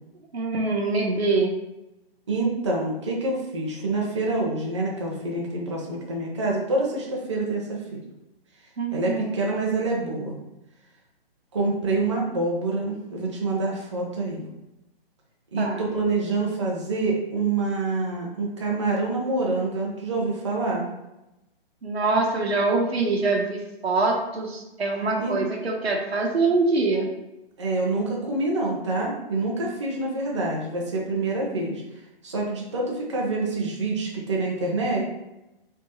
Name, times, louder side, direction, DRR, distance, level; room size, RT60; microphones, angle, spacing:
voice 1, 0.3-1.5 8.8-9.4 15.6-15.8 21.8-27.1, right 3 dB, 85° right, 1 dB, 1.1 m, -24 dB
voice 2, 2.3-8.0 8.9-10.4 11.5-14.5 15.5-20.9 25.2-25.4 27.6-31.8 32.2-35.0, right 2 dB, 30° right, -3 dB, 0.8 m, -26 dB
3.5 x 2.9 x 4.2 m, 0.94 s
hypercardioid pair, 175°, 31 cm